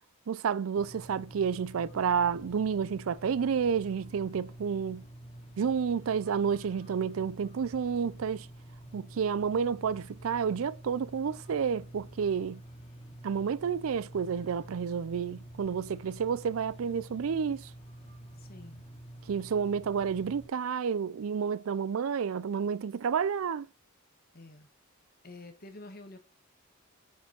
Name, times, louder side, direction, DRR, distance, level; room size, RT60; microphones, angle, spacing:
voice 1, 0.3-5.1 5.6-8.5 8.9-12.6 13.2-17.7 19.3-23.7, right 6 dB, 75° right, 0.4 m, -30 dB
sound 1, 0.7-20.5, right 1 dB, 30° left, 2.3 m, -48 dB
voice 2, 18.4-18.8 24.3-24.7 25.2-26.2, left 2 dB, 45° left, 1.5 m, -48 dB
7.1 x 6.2 x 5.4 m
head